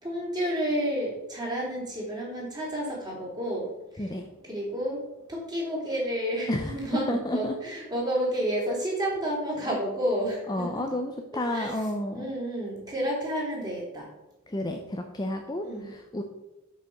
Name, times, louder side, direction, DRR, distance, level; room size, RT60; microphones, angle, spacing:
voice 1, 0.0-3.7 3.9-4.1 4.4-5.0 5.3-10.7 11.5-11.8 12.1-14.1 15.6-15.9, equal, 20° right, -4 dB, 3.3 m, -30 dB
voice 2, 4.0-4.3 6.5-6.7 7.1-7.5 10.5-12.3 14.5-16.2, left 1 dB, 20° left, 3 dB, 0.6 m, -31 dB
8.3 x 5.4 x 6.5 m, 0.97 s
head